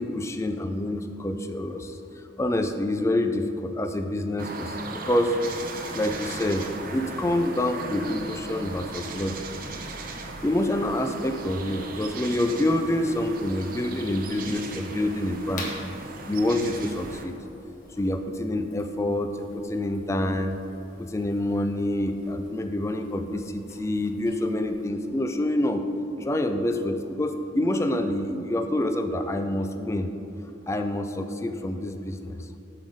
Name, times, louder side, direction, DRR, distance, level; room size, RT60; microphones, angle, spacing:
voice 1, 0.0-2.0 2.4-5.4 5.9-9.5 10.4-15.7 16.3-17.3 18.0-20.5 21.0-25.8 26.2-30.1 30.7-32.5, left 1 dB, 15° left, 7 dB, 0.3 m, -27 dB
sound 1, 4.4-17.2, right 3 dB, 45° right, 0.6 m, -37 dB
sound 2, 5.4-24.9, left 2 dB, 40° left, 1.2 m, -49 dB
8.8 x 3.8 x 6.3 m, 2.8 s
head